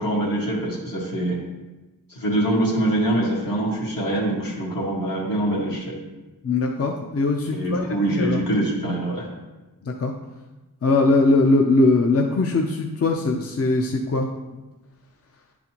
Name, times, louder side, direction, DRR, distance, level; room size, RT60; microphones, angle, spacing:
voice 1, 0.0-1.4 2.1-6.0 7.5-9.3, right 1 dB, 75° left, -4 dB, 1.8 m, -24 dB
voice 2, 6.4-8.4 9.8-10.1 10.8-14.3, left 3 dB, 45° left, 1 dB, 0.5 m, -21 dB
10.0 x 4.0 x 2.9 m, 1.1 s
wide cardioid pair, 100°, 34 cm